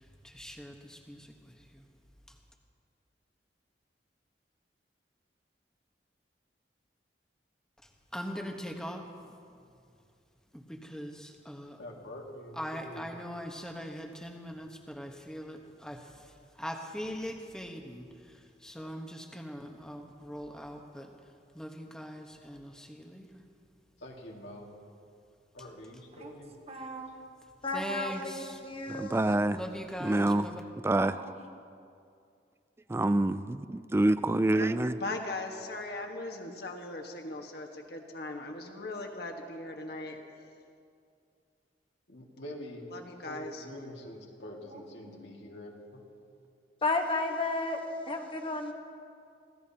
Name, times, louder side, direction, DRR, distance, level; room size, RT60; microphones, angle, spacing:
voice 1, 0.2-1.2 8.1-9.0 10.5-11.8 12.6-16.0 16.6-18.1 18.6-21.1 21.5-23.3 27.7-28.6 29.4-30.6, equal, 5° left, 2 dB, 1.1 m, -41 dB
voice 2, 11.8-13.2 18.7-18.9 24.0-24.7 25.5-26.5 42.1-42.8 43.2-46.0, equal, 80° left, -1 dB, 2.1 m, -45 dB
voice 3, 26.7-27.1 30.9-31.4 44.7-45.3, right 2 dB, 35° right, 2 dB, 1.4 m, -44 dB
voice 4, 27.6-29.3 46.8-47.8 48.1-48.7, left 2 dB, 30° left, 3 dB, 1.3 m, -32 dB
voice 5, 28.9-29.6 30.0-30.5 30.8-31.1 32.9-34.9, right 2 dB, 15° right, 12 dB, 0.3 m, -26 dB
voice 6, 35.0-40.2 42.9-43.6, left 2 dB, 60° left, 2 dB, 1.5 m, -39 dB
26.0 x 16.0 x 2.9 m, 2.4 s
head